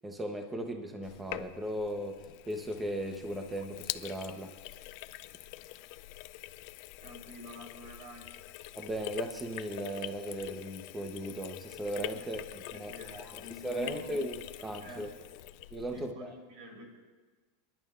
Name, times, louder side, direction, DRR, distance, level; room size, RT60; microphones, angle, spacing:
voice 1, 0.0-4.5 8.8-15.1 15.7-16.3, right 1 dB, 15° right, 5 dB, 1.0 m, -37 dB
Sink (filling or washing), 1.0-16.1, left 16 dB, 60° left, 0.5 m, -45 dB
voice 2, 7.0-8.3 12.7-14.2 14.8-15.0 15.9-16.8, left 1 dB, 70° right, 0 dB, 4.1 m, -48 dB
28.5 x 11.0 x 2.5 m, 1.3 s
supercardioid pair, 130°, 0 cm